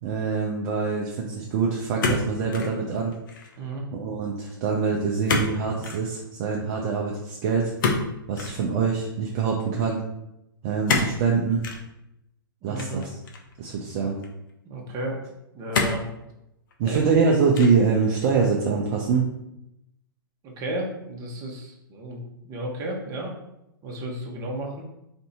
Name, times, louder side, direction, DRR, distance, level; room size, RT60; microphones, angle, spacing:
voice 1, 0.0-3.1 3.9-7.7 8.3-10.0 10.6-11.6 12.6-13.2 13.6-14.2 16.8-19.3, right 5 dB, 45° right, -1 dB, 0.6 m, -24 dB
sound 1, 2.0-2.8 3.1-3.5 5.3-5.5 5.8-6.0 7.8-8.6 10.9-11.2 11.6-11.8 12.8-13.5 14.2-14.3 15.7-16.1 16.7-17.2 17.5-17.9, left 3 dB, 60° left, 0.8 m, -26 dB
voice 2, 12.6-13.0 14.6-15.2 15.5-16.1 16.8-17.0 20.4-23.3 23.8-24.8, right 1 dB, 30° right, -1 dB, 1.1 m, -33 dB
3.4 x 2.7 x 4.2 m, 0.85 s
hypercardioid pair, 120°, 12 cm